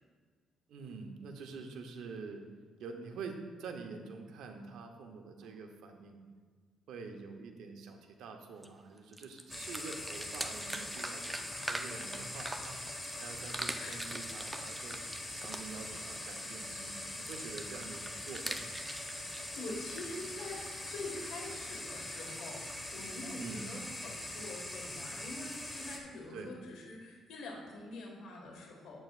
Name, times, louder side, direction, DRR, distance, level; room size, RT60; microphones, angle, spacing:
voice 1, 0.7-2.4 2.8-6.2 6.9-12.8 13.2-15.0 15.3-18.7 23.4-23.7 26.3-26.6, right 4 dB, 80° right, 4 dB, 0.9 m, -46 dB
sound 1, 8.6-8.7 9.0-13.1 13.4-15.9 17.3-20.1, right 1 dB, 10° right, 0.5 m, -42 dB
sound 2, 9.5-26.0, left 1 dB, 10° left, 1.3 m, -42 dB
voice 2, 19.1-29.0, left 2 dB, 85° left, -1 dB, 1.7 m, -45 dB
10.0 x 8.0 x 2.5 m, 1.5 s
cardioid pair, 90°, 0 cm